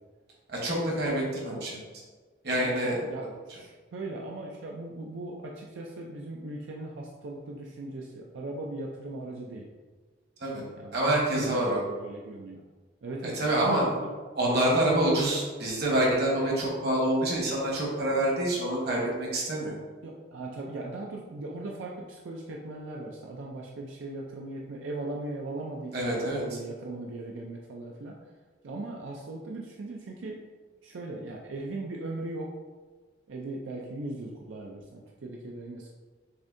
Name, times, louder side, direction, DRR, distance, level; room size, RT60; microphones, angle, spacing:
voice 1, 0.5-1.8 2.4-3.0 10.4-10.6 10.9-11.8 13.2-13.8 14.3-19.7 25.9-26.4, right 1 dB, 55° right, -3 dB, 1.2 m, -26 dB
voice 2, 2.6-9.7 10.7-12.6 13.0-14.1 14.5-14.8 15.1-15.2 20.0-28.2 28.6-30.4 30.8-32.5 33.3-35.9, right 2 dB, 90° right, -2 dB, 0.5 m, -38 dB
6.6 x 2.7 x 2.6 m, 1.4 s
head